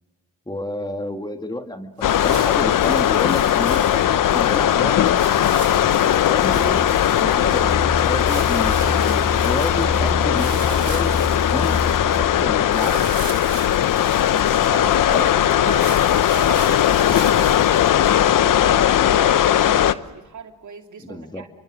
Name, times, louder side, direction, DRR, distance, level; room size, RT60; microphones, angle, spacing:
voice 1, 0.5-5.1 5.7-11.1 11.5-13.1 15.1-15.3 21.0-21.4, left 1 dB, 10° left, 5 dB, 2.2 m, -30 dB
sound 1, 2.0-19.9, left 11 dB, 65° left, 0.9 m, -18 dB
sound 2, 2.0-18.5, right 9 dB, 75° right, 2.4 m, -40 dB
sound 3, 6.3-12.6, left 2 dB, 40° left, 7.9 m, -29 dB
voice 2, 14.7-15.9 16.2-21.5, right 6 dB, 55° right, 4 dB, 2.9 m, -37 dB
29.0 x 24.5 x 6.4 m, 1.1 s
cardioid pair, 70°, 35 cm